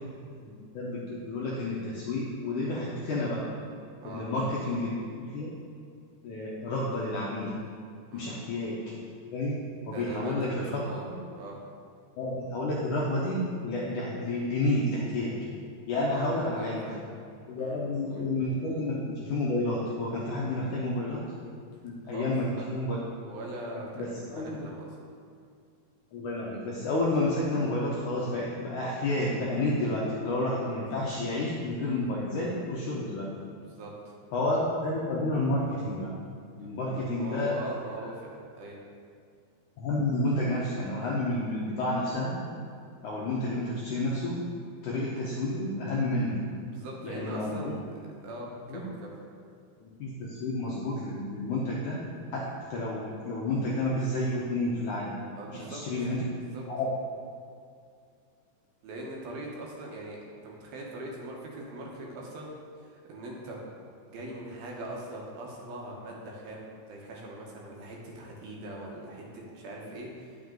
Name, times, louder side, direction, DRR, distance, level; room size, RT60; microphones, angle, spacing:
voice 1, 0.1-3.4 4.0-5.5 6.2-7.6 8.1-8.8 9.3-9.6 9.9-11.1 12.2-15.4 15.9-16.9 17.5-21.2 21.8-23.0 24.0-24.7 26.1-33.3 34.3-36.1 36.6-37.6 39.8-42.4 43.0-44.4 44.8-46.4 47.0-47.7 48.7-48.8 49.8-52.0 52.3-52.4 52.7-55.1 55.5-56.9, left 2 dB, 75° left, -5 dB, 1.8 m, -30 dB
voice 2, 9.8-11.1 11.4-11.6 16.0-17.0 17.6-17.8 18.1-18.2 22.1-22.3 22.6-22.7 23.2-24.9 31.6-31.8 33.6-34.1 36.9-38.8 46.7-49.1 55.3-55.8 56.5-56.6 58.8-62.5 62.8-63.6 64.0-70.4, right 1 dB, 75° right, -2 dB, 2.7 m, -41 dB
9.3 x 6.2 x 3.8 m, 2.3 s
omnidirectional pair, 4.5 m